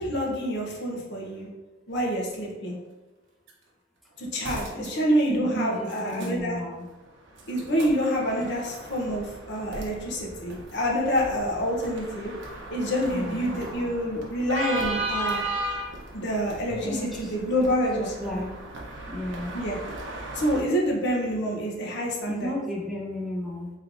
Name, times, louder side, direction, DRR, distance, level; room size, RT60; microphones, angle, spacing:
voice 1, 0.0-1.5 1.9-2.7 4.2-6.6 7.5-12.3 12.7-15.4 16.1-18.4 19.5-19.8 20.3-22.6, equal, 65° left, -1 dB, 0.8 m, -27 dB
sound 1, 3.5-3.6 4.4-4.9 5.9-6.3 7.3-20.6, right 2 dB, 65° right, 0.7 m, -36 dB
voice 2, 5.3-6.9 13.1-13.5 16.8-17.7 18.0-18.6 19.1-19.6 22.3-23.7, equal, ahead, -4 dB, 0.7 m, -33 dB
4.6 x 3.1 x 2.5 m, 1.2 s
head